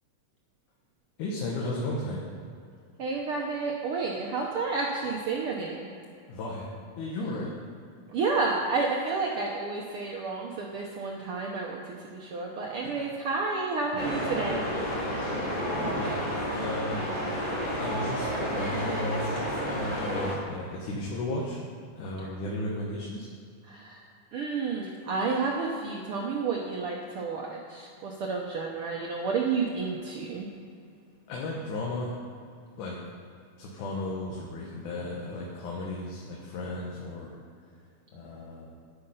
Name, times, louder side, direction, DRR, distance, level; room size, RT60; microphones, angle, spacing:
voice 1, 1.2-2.2 6.3-6.7 7.0-7.5 12.8-13.0 13.9-14.1 15.5-16.1 16.6-17.1 17.8-21.6 22.0-23.3 31.3-32.1 32.8-33.0 33.6-37.3 38.1-38.7, left 2 dB, 75° left, -3 dB, 2.6 m, -34 dB
voice 2, 3.0-5.9 8.1-14.6 23.7-24.0 24.3-30.5, right 4 dB, 75° right, -1 dB, 1.2 m, -30 dB
sound 1, 14.0-20.3, equal, 15° left, 1.8 m, -30 dB
9.8 x 9.5 x 5.6 m, 2.3 s
omnidirectional pair, 3.6 m